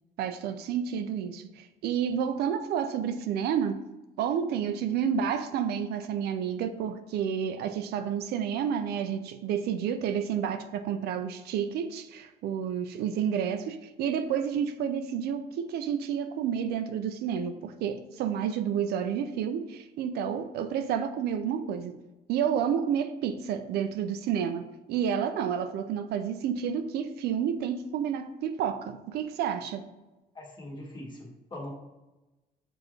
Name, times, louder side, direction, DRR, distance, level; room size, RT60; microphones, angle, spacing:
voice 1, 0.2-3.7 4.2-21.9 22.3-29.8, right 8 dB, 70° right, 8 dB, 0.4 m, -30 dB
voice 2, 30.3-31.7, left 1 dB, 25° left, -3 dB, 1.4 m, -41 dB
6.7 x 2.5 x 3.1 m, 1.1 s
cardioid pair, 110°, 17 cm